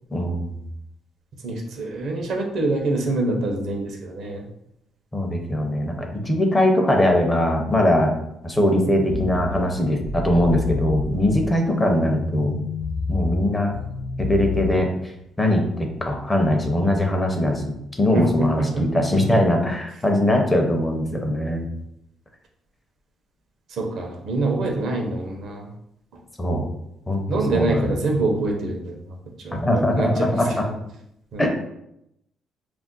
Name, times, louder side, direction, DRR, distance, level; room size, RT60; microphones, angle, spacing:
voice 1, 0.1-0.5 5.1-8.1 8.4-12.6 13.1-13.8 14.2-15.1 15.4-21.7 26.4-26.7 27.1-27.2 27.5-27.9 29.5-30.6 31.4-31.5, left 1 dB, 20° left, 3 dB, 0.5 m, -21 dB
voice 2, 1.4-4.4 18.1-19.4 23.7-25.7 27.3-29.1 29.4-30.4 31.3-31.5, right 2 dB, 70° right, 1 dB, 0.6 m, -25 dB
sound 1, 9.1-14.8, left 3 dB, 50° left, 0.9 m, -29 dB
2.4 x 2.1 x 3.7 m, 0.79 s
cardioid pair, 90°, 0 cm